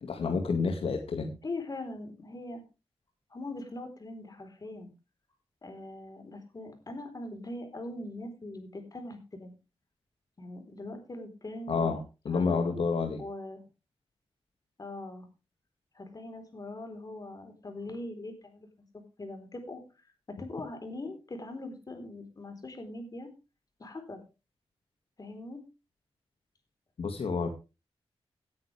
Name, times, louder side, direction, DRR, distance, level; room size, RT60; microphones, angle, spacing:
voice 1, 0.0-1.3 11.7-12.0 12.3-13.2 27.0-27.5, left 4 dB, 75° left, 4 dB, 2.1 m, -29 dB
voice 2, 1.4-2.6 3.3-4.9 5.6-9.6 10.4-11.9 12.3-12.6 13.2-13.6 14.8-15.3 15.9-18.7 19.2-19.8 20.3-23.3 23.8-24.2 25.2-25.6, left 2 dB, 40° left, 6 dB, 4.1 m, -41 dB
17.5 x 9.5 x 3.5 m, 0.29 s
wide cardioid pair, 105°, 10 cm